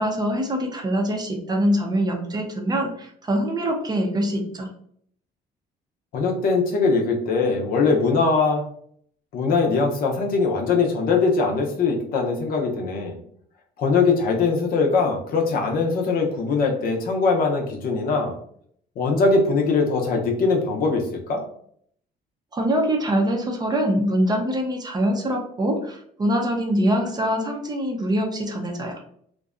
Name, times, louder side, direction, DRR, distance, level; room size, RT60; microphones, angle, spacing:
voice 1, 0.0-4.7 22.5-29.0, equal, 25° right, 2 dB, 0.5 m, -24 dB
voice 2, 6.1-8.6 9.3-13.2 13.8-18.3 19.0-21.4, left 4 dB, 60° left, 1 dB, 0.6 m, -21 dB
2.6 x 2.1 x 2.4 m, 0.65 s
cardioid pair, 110°, 17 cm